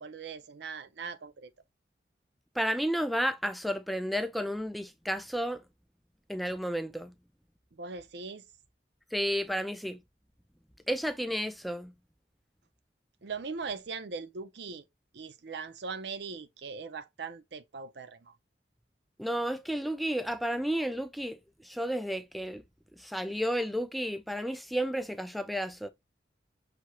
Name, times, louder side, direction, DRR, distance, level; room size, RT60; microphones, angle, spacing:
voice 1, 0.0-1.5 7.8-8.4 13.2-14.8 15.1-18.3, right 5 dB, 70° right, 0.5 m, -40 dB
voice 2, 2.6-5.6 6.3-7.1 9.1-10.0 10.9-11.9 19.2-22.6 23.0-25.9, equal, ahead, 0.3 m, -32 dB
5.8 x 2.8 x 3.0 m
head